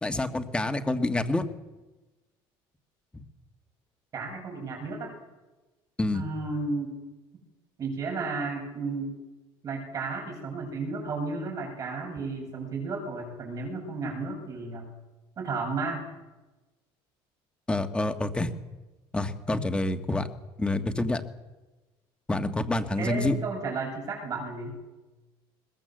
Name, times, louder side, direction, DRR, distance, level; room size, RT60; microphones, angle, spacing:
voice 1, 0.0-1.4 6.0-6.2 17.7-18.5 19.1-20.3 20.6-21.2 22.3-23.4, left 2 dB, 10° left, 6 dB, 1.7 m, -27 dB
voice 2, 4.1-5.1 6.1-6.9 7.8-9.1 9.6-14.9 15.4-16.1 23.0-24.7, right 3 dB, 35° right, 3 dB, 7.8 m, -33 dB
21.5 x 21.0 x 7.9 m, 1.1 s
cardioid pair, 140°, 10 cm